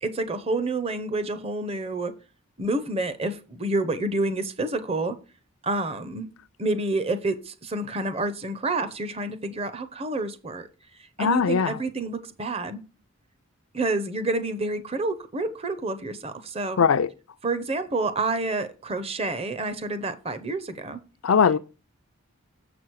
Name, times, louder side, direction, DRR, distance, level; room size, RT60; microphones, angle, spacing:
voice 1, 0.0-2.1 2.6-5.2 5.6-6.3 6.6-10.7 11.2-12.8 13.7-16.8 17.4-21.0, right 2 dB, 30° right, 0.7 m, -28 dB
voice 2, 11.2-11.7 16.8-17.1 21.2-21.6, left 6 dB, 75° left, 0.4 m, -20 dB
7.3 x 6.1 x 4.6 m
head